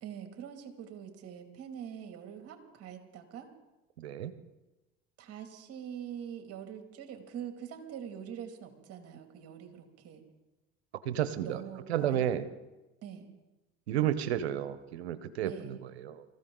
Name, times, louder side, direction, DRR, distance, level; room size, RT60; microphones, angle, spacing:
voice 1, 0.0-3.5 5.2-10.2 11.4-12.3 13.0-13.3 15.4-15.8, right 8 dB, 50° right, 5 dB, 2.7 m, -44 dB
voice 2, 4.0-4.3 11.0-11.6 11.9-12.5 13.9-16.2, right 10 dB, 90° right, 13 dB, 1.1 m, -32 dB
24.5 x 14.5 x 3.9 m, 1.1 s
hypercardioid pair, 80°, 31 cm